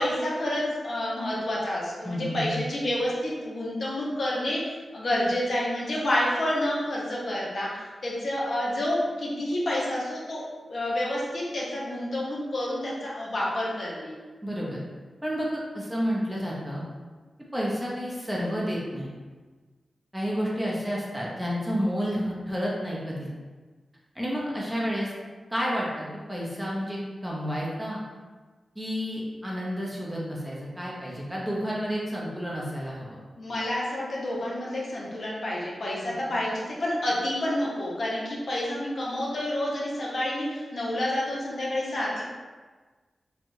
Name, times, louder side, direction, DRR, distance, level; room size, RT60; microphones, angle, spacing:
voice 1, 0.0-10.4 10.7-14.1 33.4-42.2, left 1 dB, 55° left, -5 dB, 0.7 m, -29 dB
voice 2, 2.0-2.6 14.4-14.8 15.2-16.8 17.5-19.1 20.1-23.3 24.1-25.1 25.5-28.0 28.8-33.2 36.3-36.4, equal, 10° right, -5 dB, 0.6 m, -30 dB
3.1 x 2.3 x 2.6 m, 1.4 s
wide cardioid pair, 115°, 0 cm